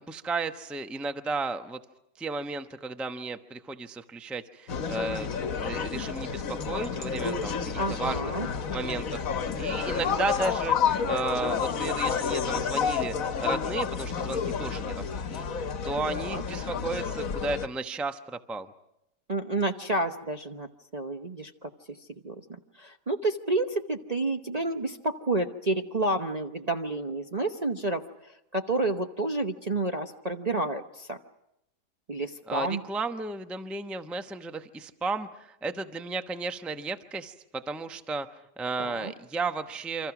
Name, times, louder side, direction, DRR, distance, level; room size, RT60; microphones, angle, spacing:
voice 1, 0.1-1.8 2.2-8.2 8.7-15.4 15.8-18.7 32.5-38.3 38.6-40.1, right 3 dB, ahead, 8 dB, 0.7 m, -34 dB
sound 1, 4.7-17.7, left 6 dB, 55° left, 1.5 m, -30 dB
voice 2, 7.8-8.5 16.2-16.4 19.3-20.7 20.9-21.7 22.2-28.1 28.5-31.2 32.1-32.8 38.8-39.1, right 2 dB, 30° right, 3 dB, 0.8 m, -30 dB
28.0 x 25.5 x 6.0 m, 0.85 s
omnidirectional pair, 1.8 m